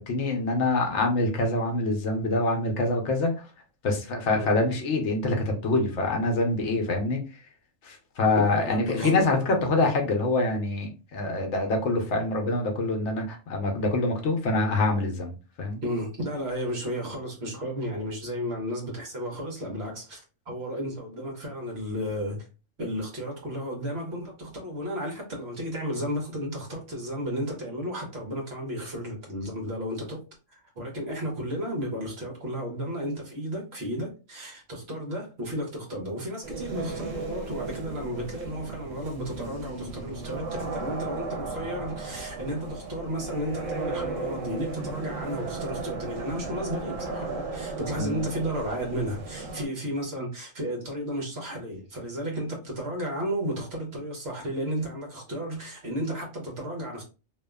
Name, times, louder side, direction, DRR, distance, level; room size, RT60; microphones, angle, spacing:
voice 1, 0.0-3.5 3.8-7.2 7.8-15.8 48.0-48.2, left 2 dB, 70° left, 1.0 m, -25 dB
voice 2, 8.4-9.4 15.8-22.5 22.8-30.2 30.5-57.0, equal, 55° right, 1.2 m, -33 dB
sound 1, 36.4-49.6, right 3 dB, 75° right, 1.1 m, -35 dB
2.8 x 2.4 x 2.2 m
omnidirectional pair, 1.3 m